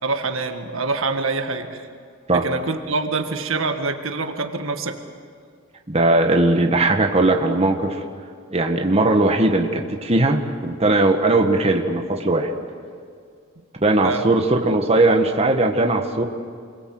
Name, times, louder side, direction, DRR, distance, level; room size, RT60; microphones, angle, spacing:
voice 1, 0.0-1.9 2.3-5.0 13.6-13.7 14.0-14.3, right 3 dB, 75° right, 6 dB, 1.8 m, -25 dB
voice 2, 5.9-8.0 8.5-12.5 13.8-16.2, right 2 dB, 30° right, 3 dB, 1.6 m, -19 dB
28.5 x 22.0 x 7.8 m, 2.2 s
head